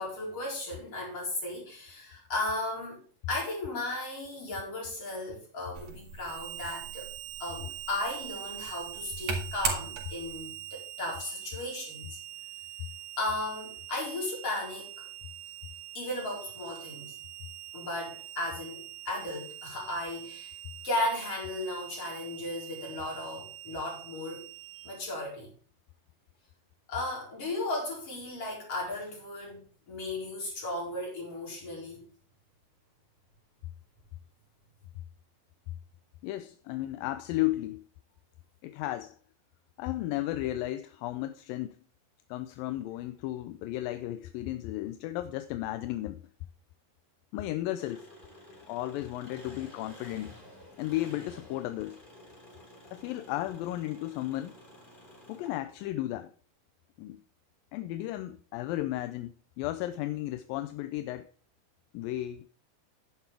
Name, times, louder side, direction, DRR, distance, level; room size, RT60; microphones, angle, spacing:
voice 1, 0.0-7.1 7.4-12.2 13.2-15.1 15.9-17.1 17.7-20.6 20.8-24.5 24.8-25.5 26.9-32.0, left 2 dB, 40° left, 5.5 m, -35 dB
sound 1, 5.7-10.4, right 4 dB, 50° right, 2.9 m, -38 dB
Harmonica, 6.3-25.0, right 14 dB, 75° right, 2.0 m, -44 dB
voice 2, 36.2-37.8 38.6-39.2 39.8-41.8 42.3-46.2 47.3-48.1 48.7-50.3 50.8-52.0 52.9-54.5 55.3-56.3 57.0-57.2 57.7-61.3 61.9-62.5, left 15 dB, 85° left, 2.3 m, -34 dB
Engine, 47.8-55.9, left 1 dB, 15° left, 2.7 m, -52 dB
10.5 x 9.8 x 3.5 m
omnidirectional pair, 4.1 m